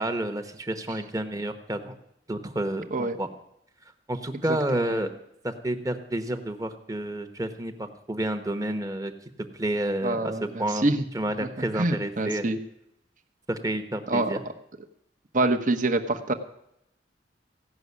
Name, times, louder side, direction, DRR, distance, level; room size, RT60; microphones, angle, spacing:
voice 1, 0.0-1.9 2.3-3.3 4.1-5.1 5.4-9.1 9.5-10.3 10.6-10.8 11.1-12.5 13.5-14.4, right 1 dB, 20° right, 8 dB, 1.1 m, -30 dB
voice 2, 4.5-5.0 10.0-11.0 11.4-11.5 11.7-12.6 14.1-14.3 15.3-16.3, right 2 dB, 45° right, 7 dB, 1.1 m, -26 dB
16.0 x 6.3 x 9.6 m, 0.79 s
head